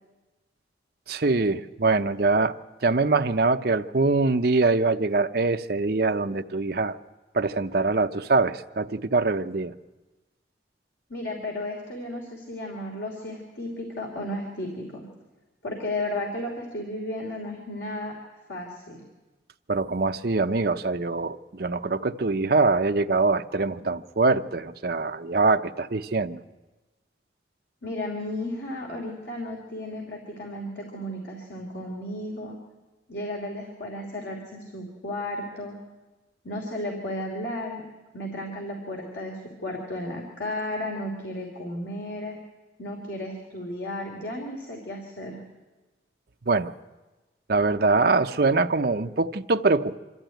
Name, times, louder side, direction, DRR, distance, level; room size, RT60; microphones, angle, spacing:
voice 1, 1.1-2.5 2.8-7.0 7.3-9.7 19.7-26.4 46.5-46.7 47.5-50.0, right 3 dB, 55° right, 8 dB, 0.7 m, -23 dB
voice 2, 11.1-15.0 15.6-18.2 18.5-19.0 27.8-32.6 33.1-35.7 36.4-37.8 38.1-42.4 42.8-45.4, left 1 dB, 80° left, 0 dB, 3.0 m, -34 dB
25.0 x 13.5 x 9.2 m, 1.2 s
head